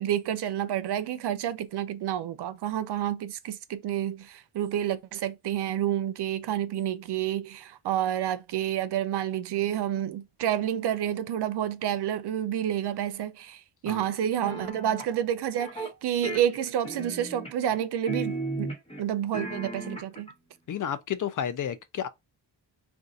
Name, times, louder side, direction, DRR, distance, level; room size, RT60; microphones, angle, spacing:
voice 1, 0.0-18.7 19.0-20.3, right 10 dB, 60° right, 0.5 m, -29 dB
sound 1, 14.4-15.1 15.6-15.9 16.2-17.8 18.1-19.0 19.3-20.3, right 2 dB, 15° left, 1.0 m, -35 dB
voice 2, 20.7-22.1, left 9 dB, 45° left, 0.4 m, -31 dB
2.6 x 2.3 x 3.9 m
cardioid pair, 120°, 46 cm